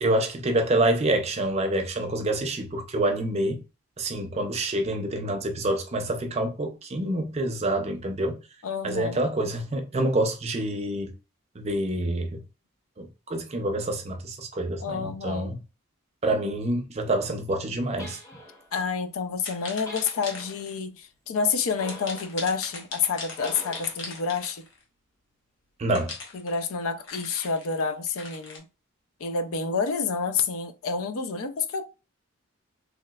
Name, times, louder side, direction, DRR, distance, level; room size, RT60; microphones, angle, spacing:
voice 1, 0.0-3.6 4.0-8.4 8.8-11.1 11.6-12.4 13.0-15.6 16.2-18.2 25.8-26.1, right 1 dB, 30° right, 0.4 m, -27 dB
voice 2, 8.6-9.2 14.8-15.5 18.7-24.7 26.3-28.6 29.2-31.8, left 5 dB, 75° left, 0.4 m, -29 dB
sound 1, 18.0-18.7 19.9-20.6 21.8-22.4 23.3-24.0, left 1 dB, 15° left, 0.7 m, -43 dB
sound 2, 19.4-20.8 21.8-24.8 25.9-28.6, left 4 dB, 60° left, 0.9 m, -39 dB
3.1 x 2.9 x 2.3 m
head